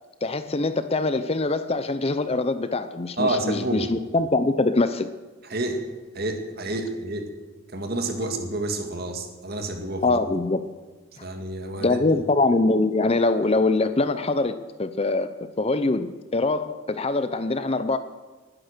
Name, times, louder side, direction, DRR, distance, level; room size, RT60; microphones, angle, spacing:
voice 1, 0.2-5.1 10.0-10.6 11.2-11.3 11.8-18.0, left 2 dB, 30° left, 11 dB, 0.6 m, -23 dB
voice 2, 3.2-3.9 5.5-5.8 6.1-7.3 7.7-10.2 11.2-12.2, right 2 dB, 45° right, 4 dB, 2.1 m, -29 dB
19.5 x 10.0 x 6.7 m, 1.3 s
head